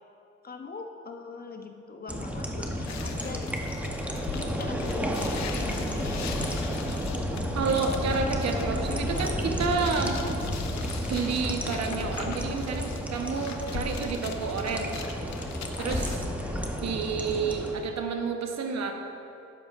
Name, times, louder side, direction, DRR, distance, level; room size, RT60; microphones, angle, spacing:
voice 1, 0.4-3.5 4.3-6.2 16.4-16.6, left 4 dB, 30° left, 4 dB, 0.7 m, -41 dB
sound 1, 2.1-17.7, equal, 5° right, 0.8 m, -32 dB
sound 2, 2.9-16.2, left 6 dB, 65° left, 0.8 m, -41 dB
voice 2, 7.5-10.2 11.1-15.0 15.8-16.2 16.8-18.9, right 5 dB, 60° right, 4 dB, 1.0 m, -30 dB
12.0 x 7.8 x 2.5 m, 2.7 s
cardioid pair, 90°, 30 cm